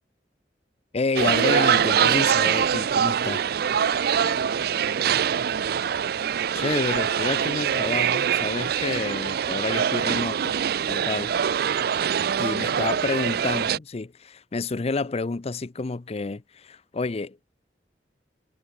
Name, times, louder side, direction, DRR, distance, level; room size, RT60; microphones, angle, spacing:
voice 1, 0.9-3.5 6.5-10.5 10.9-11.3 12.4-17.4, left 3 dB, 35° left, 0.5 m, -29 dB
sound 1, 1.2-13.8, right 8 dB, 60° right, 0.4 m, -24 dB
voice 2, 4.3-5.8 12.4-12.9, right 3 dB, 85° right, 1.5 m, -41 dB
head